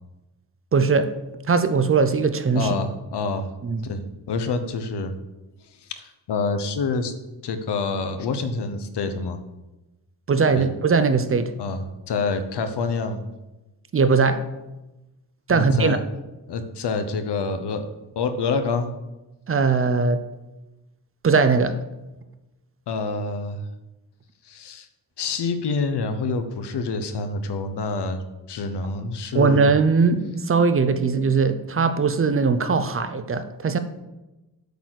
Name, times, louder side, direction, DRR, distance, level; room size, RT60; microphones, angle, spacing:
voice 1, 0.7-1.1 1.5-2.7 3.6-3.9 10.3-11.5 13.9-14.4 15.5-16.0 19.5-20.2 21.2-21.8 29.3-33.8, right 4 dB, 30° right, 11 dB, 0.6 m, -20 dB
voice 2, 2.5-3.5 3.8-5.2 5.8-7.1 7.4-9.4 10.6-10.7 11.6-13.2 15.5-16.0 16.5-17.8 18.2-18.9 22.9-23.7 24.4-24.9 25.2-28.2 28.5-29.7, left 4 dB, 70° left, 9 dB, 1.0 m, -27 dB
8.2 x 4.1 x 6.3 m, 1.0 s
cardioid pair, 100°, 42 cm